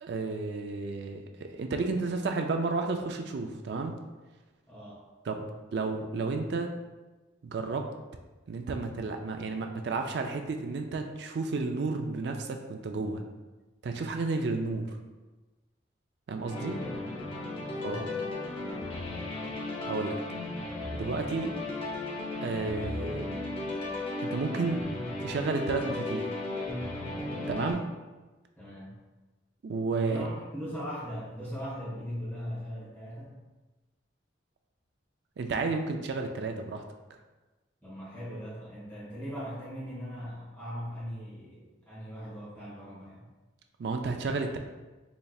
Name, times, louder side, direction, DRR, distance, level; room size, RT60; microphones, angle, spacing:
voice 1, 0.0-3.9 5.3-5.4 5.7-6.7 7.4-7.9 8.5-13.2 13.8-15.0 16.3-16.8 17.8-18.1 19.9-20.2 20.9-21.5 22.4-23.3 24.2-24.8 25.2-26.5 27.5-27.8 29.6-30.2 35.4-36.8 43.8-44.6, right 3 dB, 60° right, 4 dB, 0.4 m, -32 dB
voice 2, 4.7-5.1 16.6-16.8 17.2-17.4 17.7-18.9 27.5-27.8 28.6-28.9 30.0-33.4 37.8-43.2, equal, 10° left, -8 dB, 1.3 m, -40 dB
sound 1, 16.5-27.7, left 2 dB, 30° left, 0.6 m, -35 dB
4.1 x 3.2 x 2.3 m, 1.2 s
head